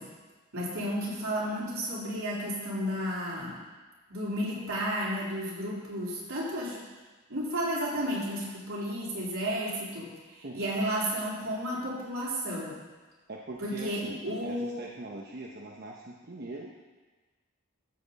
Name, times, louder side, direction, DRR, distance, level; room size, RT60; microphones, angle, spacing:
voice 1, 0.5-3.6 4.1-6.8 7.3-12.7 13.6-14.8, equal, 75° right, -7 dB, 3.8 m, -32 dB
voice 2, 13.3-16.7, right 2 dB, 45° right, -1 dB, 0.8 m, -42 dB
13.5 x 7.8 x 4.1 m, 1.3 s
head